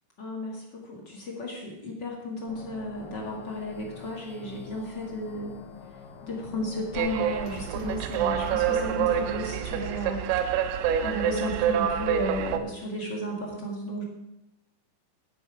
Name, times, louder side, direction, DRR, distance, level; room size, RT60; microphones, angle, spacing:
voice 1, 0.2-5.6 6.2-10.3 11.0-14.0, left 1 dB, 40° left, -2 dB, 1.6 m, -34 dB
sound 1, 2.5-10.1, left 5 dB, 70° left, 2.2 m, -46 dB
sound 2, 6.9-12.6, right 9 dB, 85° right, 2.7 m, -27 dB
10.5 x 9.9 x 4.8 m, 0.90 s
omnidirectional pair, 4.7 m